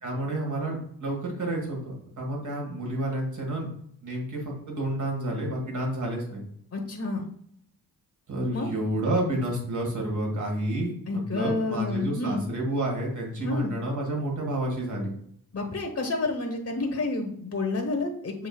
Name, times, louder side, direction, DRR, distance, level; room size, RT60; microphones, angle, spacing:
voice 1, 0.0-3.7 4.0-6.4 8.3-15.1, right 1 dB, 50° right, -1 dB, 1.7 m, -30 dB
voice 2, 6.7-7.2 8.5-8.7 11.1-12.4 13.4-13.7 15.5-18.5, left 3 dB, 35° left, 2 dB, 1.0 m, -29 dB
7.2 x 2.8 x 2.3 m, 0.66 s
cardioid pair, 95°, 40 cm